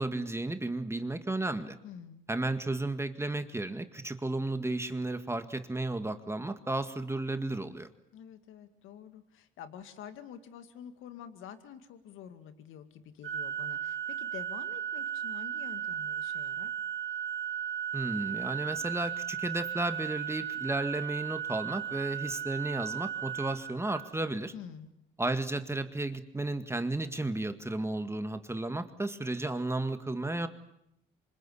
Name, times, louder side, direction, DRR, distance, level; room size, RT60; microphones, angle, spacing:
voice 1, 0.0-1.8 2.3-7.9 17.9-24.5 25.2-30.5, right 2 dB, 15° right, 8 dB, 1.9 m, -33 dB
voice 2, 1.8-2.2 8.1-16.7 24.5-24.9, left 9 dB, 90° left, 9 dB, 2.2 m, -48 dB
Organ, 13.2-24.3, right 9 dB, 70° right, 2.6 m, -36 dB
27.0 x 25.5 x 8.5 m, 0.77 s
cardioid pair, 90°, 20 cm